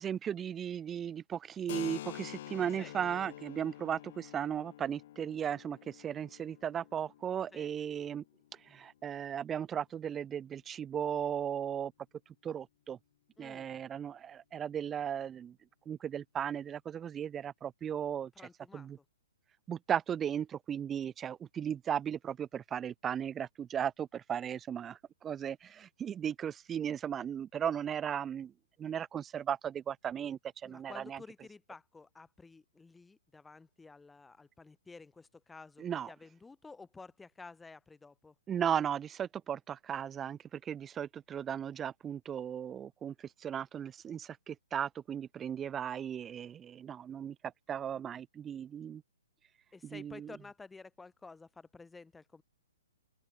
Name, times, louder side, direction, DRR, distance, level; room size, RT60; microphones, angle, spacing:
voice 1, 0.0-8.2 8.6-11.9 12.4-13.0 13.4-15.6 15.9-18.3 18.7-19.0 19.7-28.5 28.8-31.2 35.8-36.1 38.5-49.0 49.8-50.4, right 9 dB, 15° right, 0.3 m, -36 dB
Keyboard (musical), 1.7-9.1, left 13 dB, 45° left, 2.8 m, -48 dB
voice 2, 13.4-13.7 18.4-18.9 30.6-38.3 49.7-52.4, left 4 dB, 5° left, 2.3 m, -52 dB
open air
hypercardioid pair, 155°, 0 cm